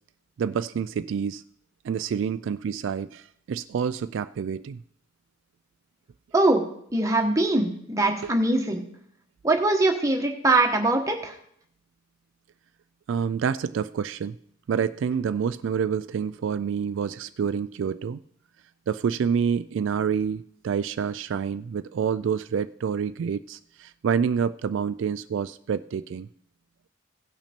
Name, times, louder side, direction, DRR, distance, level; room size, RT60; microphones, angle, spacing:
voice 1, 0.4-1.4 1.8-4.8 8.2-8.3 13.1-14.4 14.7-18.2 18.9-26.3, right 7 dB, 70° right, 12 dB, 0.3 m, -28 dB
voice 2, 6.3-6.6 6.9-8.8 9.4-11.4, right 2 dB, 15° right, 2 dB, 1.2 m, -22 dB
16.5 x 5.8 x 4.4 m, 0.68 s
head